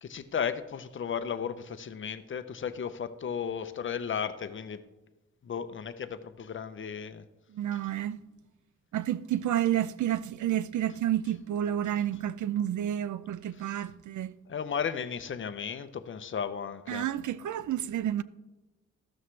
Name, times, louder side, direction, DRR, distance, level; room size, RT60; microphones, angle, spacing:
voice 1, 0.0-4.8 5.4-7.2 13.6-13.7 14.5-17.1, left 7 dB, 45° left, 0.6 m, -34 dB
voice 2, 7.5-8.2 8.9-14.3 16.9-18.2, right 11 dB, 80° right, 0.5 m, -30 dB
14.0 x 12.5 x 3.2 m
wide cardioid pair, 180°, 29 cm